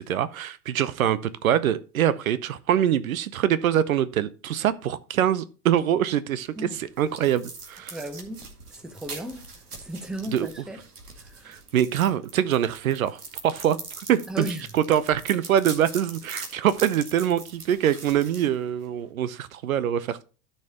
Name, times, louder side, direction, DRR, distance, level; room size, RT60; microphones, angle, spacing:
voice 1, 0.0-8.0 10.3-10.5 11.4-13.8 14.1-14.5 14.7-20.2, right 10 dB, 65° right, 0.8 m, -24 dB
sound 1, 6.4-19.1, right 4 dB, 80° right, 2.3 m, -42 dB
voice 2, 7.9-10.8 11.2-11.6 14.3-14.7, equal, ahead, 0.9 m, -36 dB
13.5 x 5.6 x 2.9 m
figure-of-eight pair, 100°, 45 cm